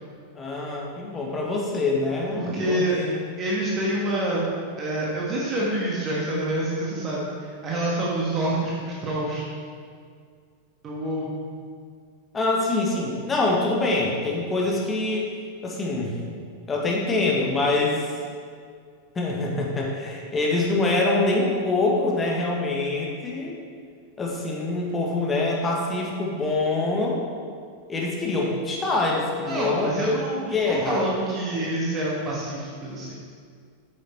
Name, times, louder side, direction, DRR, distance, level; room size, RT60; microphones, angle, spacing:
voice 1, 0.3-3.2 12.3-15.3 15.6-16.3 16.7-18.0 19.1-23.5 24.2-27.2 27.9-30.0 30.5-31.0, left 2 dB, 20° left, -2 dB, 1.6 m, -25 dB
voice 2, 2.3-3.0 3.4-4.5 4.8-7.3 7.6-9.5 10.8-11.3 29.4-33.2, right 1 dB, 30° right, -5 dB, 1.8 m, -26 dB
8.5 x 7.0 x 4.5 m, 2.1 s
figure-of-eight pair, 90°, 0 cm